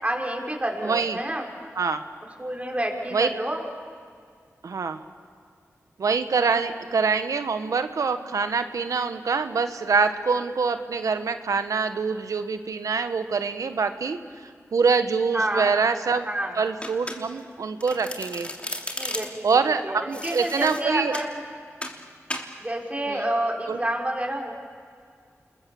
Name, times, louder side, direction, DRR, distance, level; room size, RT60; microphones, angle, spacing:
voice 1, 0.0-1.5 2.4-3.6 15.3-15.7 16.3-16.6 19.0-21.4 22.6-24.5, right 1 dB, 25° right, 0 dB, 5.3 m, -29 dB
voice 2, 0.8-1.2 1.8-2.0 3.1-3.3 4.6-5.0 6.0-14.2 14.7-16.3 16.5-18.5 19.4-21.2 23.1-23.3 23.7-23.8, right 5 dB, 80° right, 9 dB, 1.3 m, -25 dB
Domestic sounds home sounds, 16.8-17.5 17.8-19.5 20.1-21.3 21.8-22.0 22.3-22.5, left 1 dB, 20° left, 3.1 m, -35 dB
29.5 x 21.5 x 7.1 m, 2.1 s
cardioid pair, 40°, 6 cm